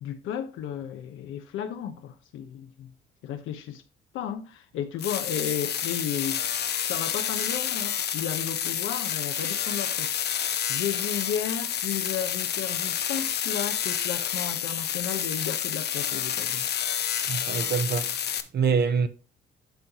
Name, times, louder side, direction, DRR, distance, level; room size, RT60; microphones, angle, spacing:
voice 1, 0.0-2.9 3.2-3.8 4.1-6.4 6.9-16.7, left 9 dB, 90° left, 1.0 m, -34 dB
sound 1, 5.0-18.4, left 9 dB, 55° left, 0.7 m, -29 dB
voice 2, 16.9-18.1 18.5-19.1, right 6 dB, 55° right, 0.9 m, -26 dB
11.5 x 4.0 x 3.0 m
cardioid pair, 90°, 20 cm